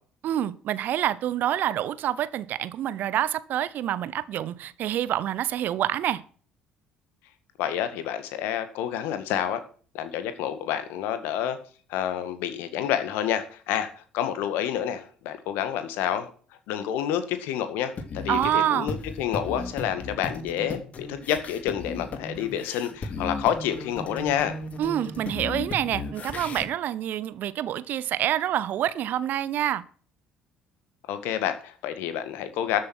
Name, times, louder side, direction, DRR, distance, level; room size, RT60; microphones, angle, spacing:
voice 1, 0.2-6.2 18.3-18.9 24.8-29.8, right 11 dB, 55° right, 18 dB, 0.9 m, -27 dB
voice 2, 7.6-9.6 9.9-11.6 11.9-16.3 16.7-24.6 31.1-32.8, left 10 dB, 65° left, 10 dB, 1.9 m, -29 dB
sound 1, 18.0-26.7, left 3 dB, 40° left, 2.4 m, -36 dB
13.5 x 7.7 x 6.2 m, 0.42 s
figure-of-eight pair, 55°, 4 cm